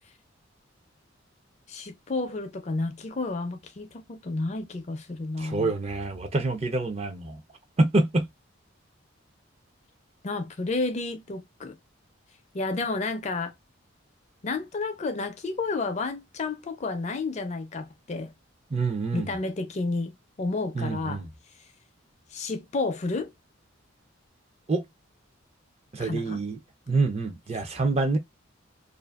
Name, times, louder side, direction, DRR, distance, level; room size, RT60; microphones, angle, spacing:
voice 1, 1.7-5.7 10.2-11.8 12.5-13.5 14.4-18.3 19.1-21.2 22.3-23.3 26.0-26.4, left 3 dB, 35° left, 0.4 m, -31 dB
voice 2, 5.4-7.4 7.8-8.3 18.7-19.3 20.8-21.3 24.7-24.8 25.9-26.6 26.9-28.2, right 3 dB, 30° right, 0.4 m, -26 dB
2.5 x 2.4 x 2.3 m
head